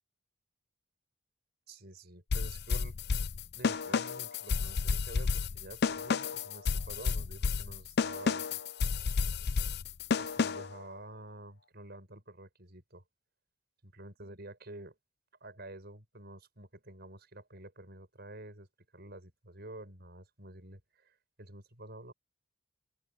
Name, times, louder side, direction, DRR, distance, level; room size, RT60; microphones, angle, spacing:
voice 1, 1.7-3.0 3.5-8.6 10.2-13.0 13.8-15.0 15.4-18.7 18.9-22.1, right 1 dB, 55° right, 6.3 m, -49 dB
sound 1, 2.3-10.8, left 5 dB, 55° left, 0.5 m, -31 dB
head